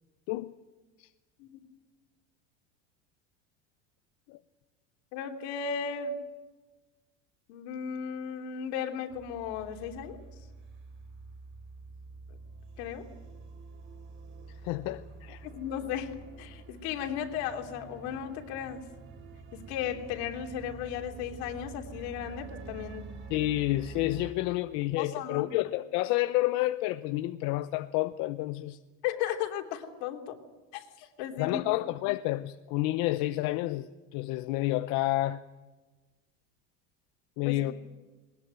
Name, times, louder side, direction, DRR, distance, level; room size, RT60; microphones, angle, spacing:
voice 1, 5.1-6.2 7.5-10.2 12.8-13.1 15.4-16.1 16.4-18.8 19.5-23.1 25.0-25.5 29.0-30.4 30.7-30.9 31.2-31.6 37.4-37.7, left 8 dB, 75° left, 4 dB, 3.2 m, -35 dB
sound 1, 9.1-24.3, right 4 dB, 35° right, 5.1 m, -47 dB
voice 2, 14.6-15.4 23.3-28.8 31.0-31.1 31.4-35.4 37.4-37.7, left 17 dB, 60° left, 11 dB, 0.8 m, -30 dB
21.0 x 20.0 x 9.2 m, 1.2 s
cardioid pair, 145°, 32 cm